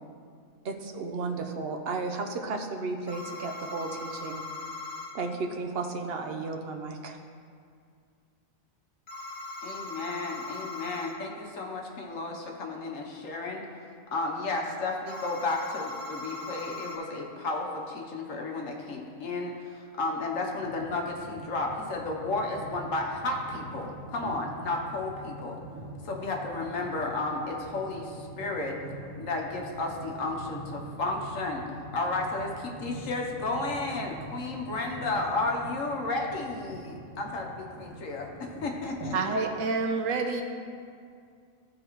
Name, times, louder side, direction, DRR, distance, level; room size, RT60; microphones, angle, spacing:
voice 1, 0.6-4.4 5.1-7.2, right 3 dB, 55° right, 3 dB, 0.8 m, -34 dB
sound 1, 3.1-5.1 9.1-11.1 15.1-17.0, left 2 dB, 45° left, 1.5 m, -39 dB
voice 2, 9.6-13.6 14.1-25.6 26.0-28.7 29.1-31.6 31.9-39.1, left 2 dB, 70° left, 1 dB, 1.3 m, -33 dB
sound 2, 20.5-39.2, right 1 dB, 30° right, 2.3 m, -44 dB
voice 3, 39.1-40.4, right 4 dB, 75° right, 4 dB, 1.0 m, -28 dB
14.0 x 4.9 x 3.0 m, 2.3 s
omnidirectional pair, 1.4 m